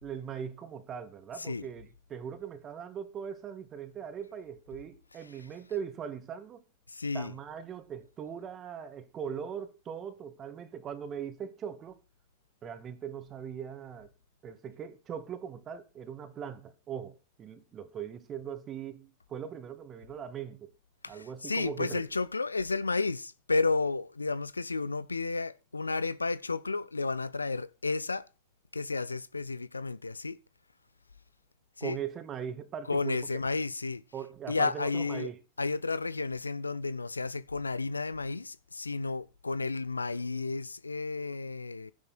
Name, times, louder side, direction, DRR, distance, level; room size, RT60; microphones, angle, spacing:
voice 1, 0.0-6.6 7.1-12.0 12.6-14.1 14.4-20.7 21.1-22.0 31.8-33.2 34.1-35.4, right 8 dB, 25° right, 2.1 m, -40 dB
voice 2, 6.9-7.3 21.0-28.3 28.7-30.4 31.8-32.0 32.9-34.0 34.5-35.3 35.6-41.9, left 3 dB, 80° left, 0.5 m, -32 dB
12.5 x 10.5 x 4.4 m
figure-of-eight pair, 90°, 0 cm